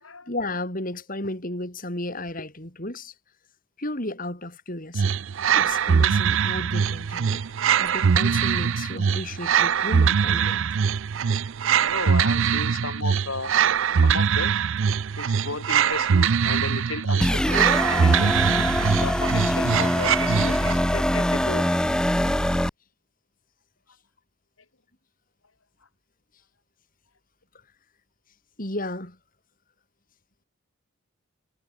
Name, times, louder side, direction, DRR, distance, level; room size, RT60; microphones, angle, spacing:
voice 1, 0.3-3.1 3.8-5.1 5.5-7.4 7.8-10.7 28.6-29.2, left 1 dB, 40° left, 4.3 m, -33 dB
sound 1, 4.9-20.9, right 7 dB, 65° right, 0.4 m, -22 dB
voice 2, 11.8-13.5 14.0-14.6 15.2-18.3 19.0-21.7, left 3 dB, 70° left, 3.3 m, -34 dB
sound 2, 17.2-22.7, left 1 dB, 5° left, 0.4 m, -23 dB
head